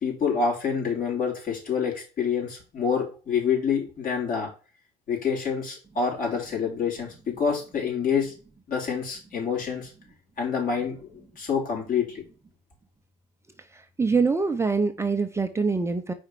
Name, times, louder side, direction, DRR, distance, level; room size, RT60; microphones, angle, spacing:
voice 1, 0.0-4.5 5.1-8.3 8.7-9.9 10.4-12.2, left 6 dB, 55° left, -2 dB, 3.6 m, -27 dB
voice 2, 13.7-16.1, right 4 dB, 15° right, 7 dB, 0.6 m, -24 dB
5.0 x 4.3 x 4.7 m, 0.35 s
cardioid pair, 110°, 17 cm